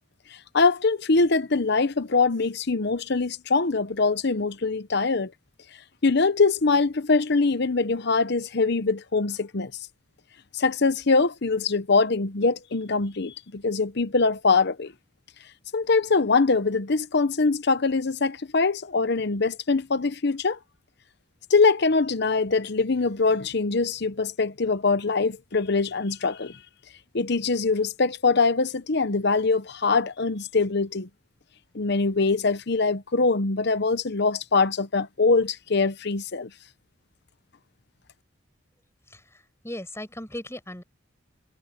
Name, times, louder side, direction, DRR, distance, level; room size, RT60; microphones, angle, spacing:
voice 1, 0.5-5.3 6.0-9.7 10.5-14.9 15.7-20.6 21.5-26.6 27.1-31.1 31.7-36.5, left 4 dB, 55° left, 0.9 m, -23 dB
voice 2, 39.1-40.8, left 1 dB, 15° left, 7.6 m, -38 dB
head